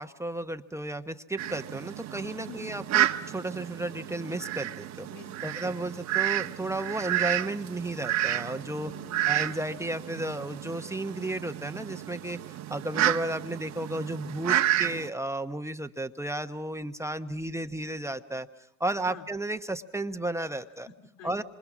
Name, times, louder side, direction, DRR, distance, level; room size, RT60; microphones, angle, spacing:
voice 1, 0.0-5.1 5.4-8.9 9.2-12.4 12.7-18.5 18.8-20.9 21.2-21.4, right 1 dB, 10° right, 8 dB, 1.1 m, -33 dB
Fowl, 1.4-15.1, right 13 dB, 55° right, 1.3 m, -31 dB
voice 2, 2.5-2.8 5.1-6.0 8.8-9.4 19.1-19.3 20.9-21.4, left 5 dB, 75° left, 4 dB, 3.3 m, -48 dB
27.0 x 25.5 x 6.2 m, 0.78 s
supercardioid pair, 85°, 34 cm